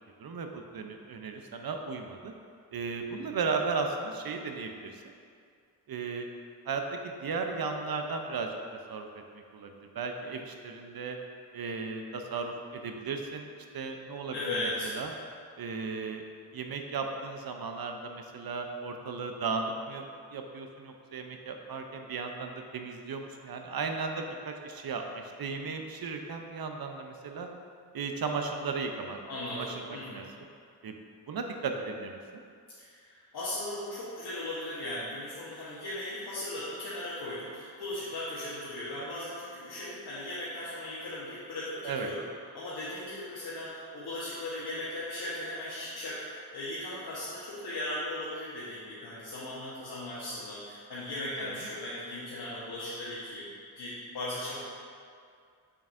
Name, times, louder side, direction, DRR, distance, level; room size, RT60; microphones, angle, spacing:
voice 1, 0.2-2.3 2.7-5.0 5.9-6.3 6.7-8.6 8.9-11.2 11.5-14.6 14.8-15.1 15.6-16.2 16.5-27.5 27.9-29.2 29.5-30.2 30.8-30.9 31.3-32.4 41.8-42.1, right 4 dB, 65° right, 4 dB, 0.7 m, -35 dB
voice 2, 14.3-14.9 29.3-30.3 32.8-42.2 42.5-54.6, left 1 dB, 75° left, -9 dB, 1.2 m, -37 dB
6.7 x 5.9 x 2.6 m, 2.3 s
cardioid pair, 45°, 39 cm